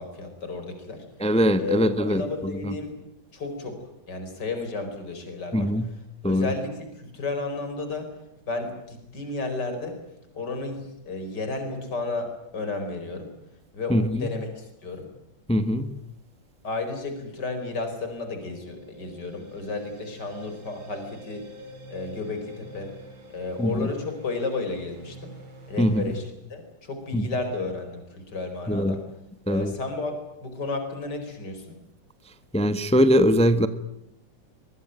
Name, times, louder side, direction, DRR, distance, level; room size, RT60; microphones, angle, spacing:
voice 1, 0.0-1.1 1.6-3.0 3.3-3.8 4.1-5.7 6.2-8.1 8.5-10.0 10.3-13.3 13.7-15.1 16.6-21.5 21.9-22.9 23.3-25.3 25.7-26.2 26.5-29.0 29.5-31.8, left 3 dB, 60° left, 5.2 m, -32 dB
voice 2, 1.2-2.7 5.5-5.9 6.2-6.5 13.9-14.3 15.5-15.9 23.6-23.9 25.8-26.1 27.1-27.3 28.7-29.0 29.5-29.7 32.5-33.7, equal, 5° left, 1.1 m, -22 dB
sound 1, 18.0-26.2, right 1 dB, 80° right, 4.4 m, -47 dB
23.0 x 23.0 x 9.1 m
omnidirectional pair, 2.1 m